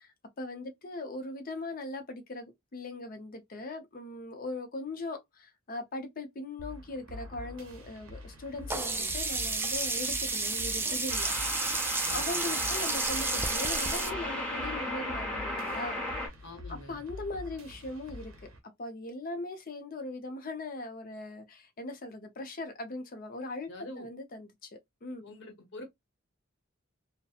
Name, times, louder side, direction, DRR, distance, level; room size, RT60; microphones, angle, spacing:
voice 1, 0.0-11.3 12.1-16.0 16.9-18.3 18.8-23.7 24.0-24.7 25.0-25.3, left 2 dB, 45° left, 0.6 m, -39 dB
sound 1, 6.6-18.6, left 2 dB, 75° right, 0.7 m, -46 dB
sound 2, 7.1-7.4 11.1-16.3, left 1 dB, 5° left, 1.2 m, -36 dB
Sink (filling or washing), 8.7-14.1, right 3 dB, 10° right, 0.3 m, -31 dB
voice 2, 12.0-12.5 16.4-17.0 23.7-24.1 25.2-25.8, left 2 dB, 60° left, 1.0 m, -46 dB
2.7 x 2.1 x 2.4 m
head